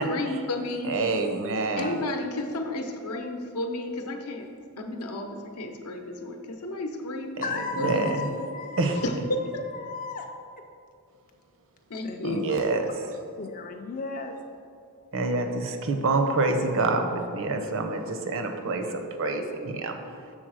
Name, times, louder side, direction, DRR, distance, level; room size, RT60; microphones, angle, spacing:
voice 1, 0.0-0.9 1.8-4.5 4.8-7.4 7.8-8.4 9.0-9.4 11.9-12.5, left 2 dB, 75° left, 4 dB, 0.7 m, -32 dB
voice 2, 0.8-1.9 7.4-7.5 7.8-8.3 8.8-9.0 12.2-12.9 15.1-20.0, right 3 dB, 60° right, 5 dB, 0.7 m, -27 dB
voice 3, 7.4-9.3 9.7-10.3 12.0-12.6 13.4-14.4, left 4 dB, 35° left, 3 dB, 0.4 m, -36 dB
6.3 x 3.9 x 6.3 m, 2.4 s
head